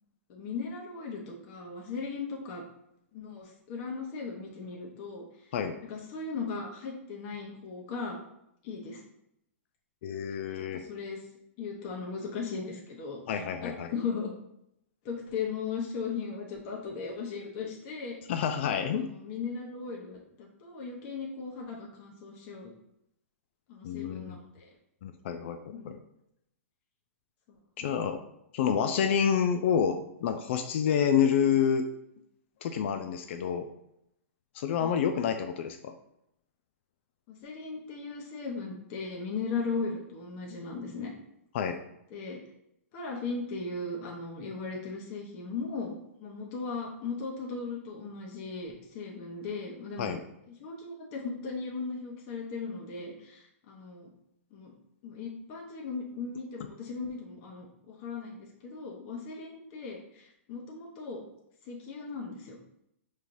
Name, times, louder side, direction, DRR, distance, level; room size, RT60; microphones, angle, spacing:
voice 1, 0.3-2.6 3.1-5.5 5.8-8.2 8.6-9.0 10.7-11.2 11.6-13.2 13.6-14.3 15.0-18.2 19.0-22.7 23.7-24.7 25.7-25.9 27.8-27.9 34.8-35.0 37.3-41.1 42.1-42.4 42.9-45.9 46.2-50.2 50.6-54.1 54.5-54.7 55.0-61.2 61.6-62.6, left 4 dB, 40° left, -1 dB, 0.8 m, -37 dB
voice 2, 10.0-10.8 13.3-13.9 18.3-19.1 23.8-24.4 25.0-25.6 25.8-26.0 27.8-28.2 28.5-31.9 32.6-33.7 34.5-35.9 41.5-41.8 50.0-50.2, left 7 dB, 60° left, 7 dB, 0.4 m, -28 dB
5.4 x 3.2 x 2.6 m, 0.79 s
hypercardioid pair, 130°, 7 cm